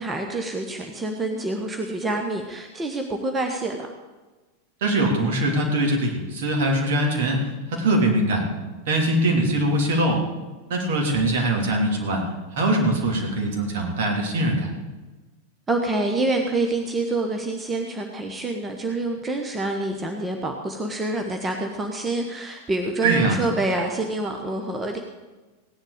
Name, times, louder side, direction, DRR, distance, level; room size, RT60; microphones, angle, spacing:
voice 1, 0.0-3.9 15.7-25.0, right 2 dB, 15° right, 3 dB, 1.2 m, -27 dB
voice 2, 4.8-8.4 8.9-10.2 10.7-12.2 12.5-14.7 23.0-23.4, right 1 dB, 55° right, 0 dB, 3.2 m, -22 dB
17.0 x 10.5 x 5.1 m, 1.2 s
figure-of-eight pair, 90°, 0 cm